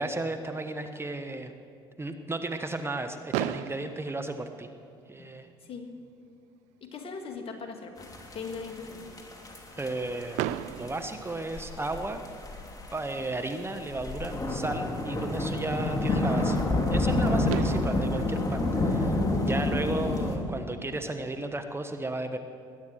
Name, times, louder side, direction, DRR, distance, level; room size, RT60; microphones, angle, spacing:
voice 1, 0.0-1.5 2.0-4.7 5.1-5.5 9.8-12.2 12.9-16.6 16.9-22.4, right 2 dB, 20° right, 6 dB, 1.2 m, -34 dB
Fireworks, 3.3-5.3 6.2-6.3 6.4-6.7 7.0-7.1 10.4-12.2 13.9-14.0 17.0-17.1 17.5-19.8, right 13 dB, 70° right, 0.5 m, -36 dB
voice 2, 5.2-5.9 6.8-9.2 19.7-20.1, left 4 dB, 50° left, 4 dB, 2.2 m, -40 dB
sound 1, 8.0-20.4, left 2 dB, 30° left, 2.7 m, -29 dB
21.0 x 9.4 x 6.4 m, 2.4 s
hypercardioid pair, 55°, 13 cm